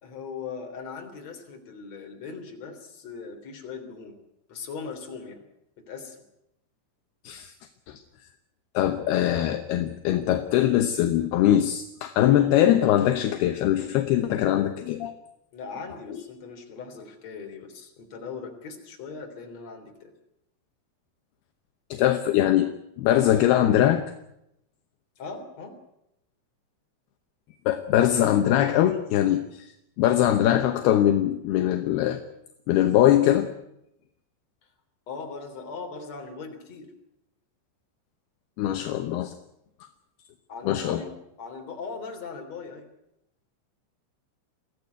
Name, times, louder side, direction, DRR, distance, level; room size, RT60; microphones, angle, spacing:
voice 1, 0.0-4.2 4.5-5.4 5.8-6.2 15.5-20.1 25.2-25.8 35.1-36.9 40.5-42.9, left 5 dB, 35° left, 4 dB, 4.1 m, -39 dB
voice 2, 8.7-15.1 21.9-22.7 23.0-24.0 27.7-29.7 30.0-32.2 32.7-33.5 38.6-39.3 40.7-41.0, left 12 dB, 75° left, 7 dB, 2.6 m, -22 dB
23.0 x 15.5 x 9.5 m, 0.83 s
omnidirectional pair, 5.5 m